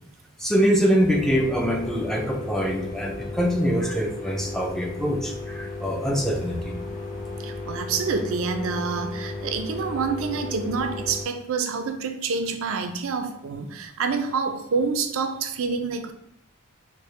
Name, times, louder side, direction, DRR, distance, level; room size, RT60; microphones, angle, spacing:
voice 1, 0.4-6.7, equal, ahead, 0 dB, 0.4 m, -24 dB
sound 1, 1.0-11.2, left 2 dB, 40° left, 1.0 m, -35 dB
voice 2, 7.4-16.1, right 5 dB, 70° right, 6 dB, 0.4 m, -27 dB
4.5 x 2.1 x 3.2 m, 0.76 s
head